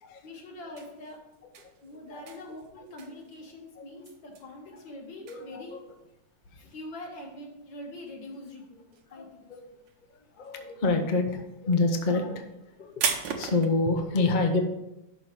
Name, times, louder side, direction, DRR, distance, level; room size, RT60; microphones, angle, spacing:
voice 1, 0.2-1.2 1.8-5.8 6.4-8.8 9.1-9.5, left 1 dB, 60° left, 0 dB, 2.2 m, -44 dB
sound 1, 0.6-8.5 8.8-9.5 9.8-13.7, right 7 dB, 65° right, 1.4 m, -36 dB
voice 2, 5.2-5.8 9.1-9.6 10.4-12.5 12.8-14.7, left 3 dB, 85° left, 4 dB, 0.4 m, -27 dB
11.5 x 3.9 x 4.7 m, 0.91 s
omnidirectional pair, 2.3 m